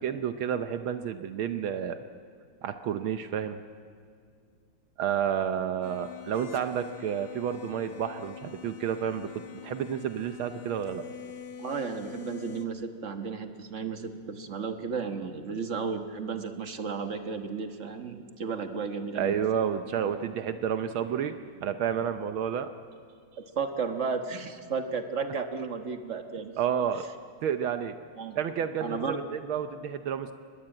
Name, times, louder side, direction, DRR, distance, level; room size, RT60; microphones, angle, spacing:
voice 1, 0.0-2.0 2.6-3.6 5.0-9.3 9.6-11.0 19.1-22.7 26.6-27.1 27.4-28.0 28.3-30.3, right 8 dB, 75° right, 9 dB, 1.6 m, -30 dB
sound 1, 5.8-12.7, left 8 dB, 75° left, 2.2 m, -44 dB
voice 2, 11.6-19.4 23.4-26.6 28.2-28.4 28.8-29.2, right 5 dB, 40° right, 6 dB, 1.4 m, -33 dB
23.0 x 20.5 x 9.0 m, 2.2 s
omnidirectional pair, 2.4 m